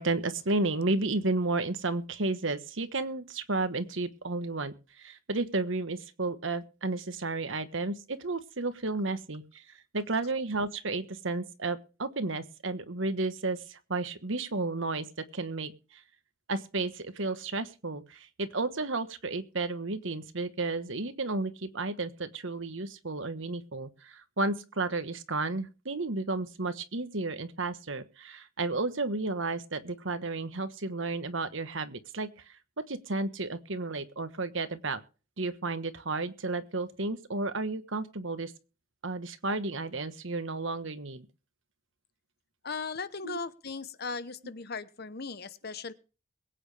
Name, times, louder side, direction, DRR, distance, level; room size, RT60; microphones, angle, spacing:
voice 1, 0.0-9.6 9.9-15.1 15.3-15.7 16.5-32.3 32.9-35.0 35.4-38.5 39.0-41.2 43.2-43.4, right 3 dB, 65° right, 11 dB, 1.3 m, -32 dB
voice 2, 42.6-45.9, left 4 dB, 50° left, 14 dB, 1.0 m, -37 dB
22.5 x 9.0 x 3.4 m, 0.35 s
head